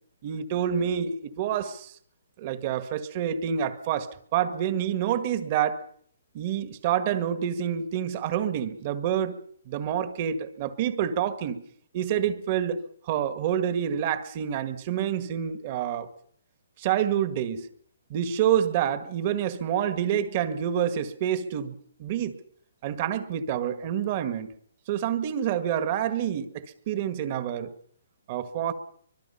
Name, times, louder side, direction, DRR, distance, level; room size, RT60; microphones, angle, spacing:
voice 1, 0.2-1.9 2.4-5.8 6.3-9.3 9.7-11.6 11.9-16.1 16.8-17.7 18.1-22.3 22.8-24.5 24.9-27.7 28.3-28.7, right 9 dB, 35° right, 11 dB, 1.7 m, -27 dB
24.5 x 22.5 x 5.7 m, 0.63 s
hypercardioid pair, 150°, 0 cm